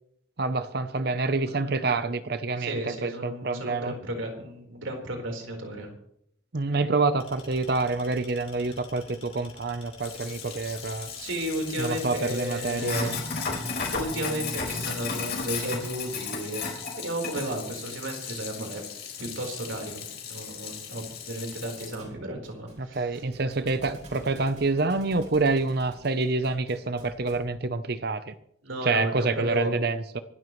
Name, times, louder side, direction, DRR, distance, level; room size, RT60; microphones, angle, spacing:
voice 1, 0.4-3.9 6.5-11.1 11.8-13.2 22.8-28.3 28.8-30.2, right 3 dB, 50° right, 12 dB, 0.7 m, -27 dB
voice 2, 1.5-2.0 2.6-5.9 11.2-13.1 13.9-16.7 17.0-18.8 19.2-23.2 28.6-29.7, right 1 dB, 85° right, 2 dB, 4.3 m, -34 dB
sound 1, 7.2-14.0, left 4 dB, 30° left, 3.4 m, -50 dB
Sink (filling or washing), 10.0-21.9, left 5 dB, 50° left, 4.1 m, -35 dB
Thump thud, 22.0-27.5, equal, 35° right, 5.5 m, -49 dB
25.0 x 13.0 x 3.2 m, 0.72 s
head